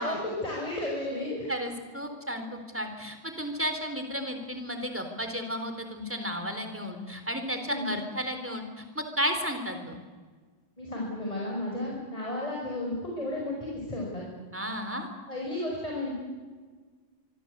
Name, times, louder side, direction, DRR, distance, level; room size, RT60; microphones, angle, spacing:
voice 1, 0.0-1.5 7.6-7.9 10.8-14.2 15.3-16.1, left 1 dB, 15° left, -2 dB, 5.9 m, -33 dB
voice 2, 1.5-10.0 14.5-15.1, equal, 5° right, 6 dB, 3.8 m, -33 dB
25.0 x 24.5 x 8.3 m, 1.5 s
omnidirectional pair, 2.1 m